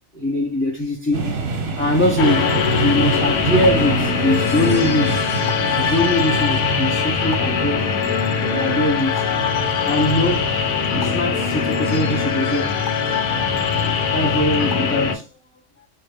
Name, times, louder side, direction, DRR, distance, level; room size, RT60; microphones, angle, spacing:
voice 1, 0.1-1.3 1.8-5.3 5.8-7.9 8.4-9.3 9.9-10.6 10.9-12.8 14.1-15.3, left 1 dB, 15° left, 0.6 m, -22 dB
sound 1, 1.1-12.9, right 4 dB, 60° right, 0.9 m, -28 dB
sound 2, 2.2-15.2, left 5 dB, 80° left, 1.0 m, -21 dB
4.2 x 2.5 x 3.3 m
omnidirectional pair, 1.3 m